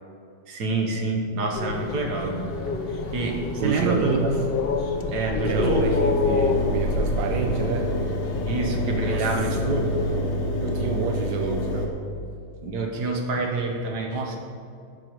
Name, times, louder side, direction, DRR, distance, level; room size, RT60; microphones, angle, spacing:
voice 1, 0.5-2.4 3.1-4.3 5.1-5.9 8.5-9.9 12.6-14.4, right 3 dB, 60° right, 1 dB, 2.0 m, -27 dB
sound 1, 1.5-10.2, left 4 dB, 50° left, 0.7 m, -29 dB
voice 2, 3.6-4.5 5.3-8.0 9.0-9.3 10.6-12.0, right 6 dB, 85° right, 4 dB, 1.5 m, -29 dB
Engine, 5.5-11.9, equal, 85° left, 2.2 m, -27 dB
17.5 x 6.2 x 4.8 m, 2.5 s
omnidirectional pair, 2.1 m